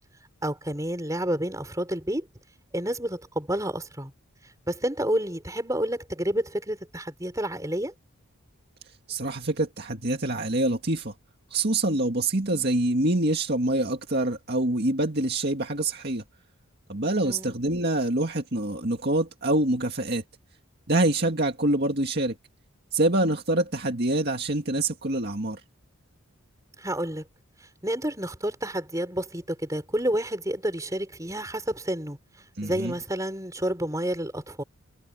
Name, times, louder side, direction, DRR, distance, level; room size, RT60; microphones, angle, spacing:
voice 1, 0.4-2.2 2.7-4.1 4.7-7.9 17.2-17.5 26.8-27.2 27.8-32.2 32.6-34.6, right 1 dB, 15° right, 5.7 m, -29 dB
voice 2, 9.1-11.1 11.5-16.2 16.9-20.2 20.9-22.3 22.9-25.6 32.6-32.9, right 2 dB, 45° right, 2.1 m, -25 dB
head